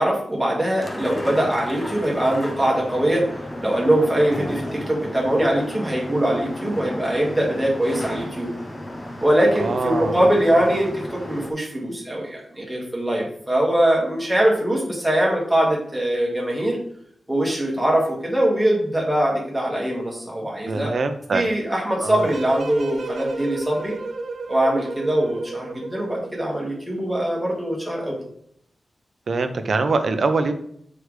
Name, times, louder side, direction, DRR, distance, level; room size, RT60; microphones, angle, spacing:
voice 1, 0.0-8.5 9.2-16.8 17.3-21.0 21.3-24.0 24.5-28.2, right 1 dB, 5° right, -3 dB, 1.8 m, -22 dB
sound 1, 0.8-11.5, left 1 dB, 15° left, 0.8 m, -34 dB
voice 2, 9.6-10.2 20.7-21.4 22.0-22.3 29.3-30.6, right 3 dB, 55° right, 8 dB, 0.6 m, -23 dB
sound 2, 22.1-26.4, right 3 dB, 75° right, 1.3 m, -33 dB
6.5 x 4.9 x 3.3 m, 0.69 s
wide cardioid pair, 170°, 0 cm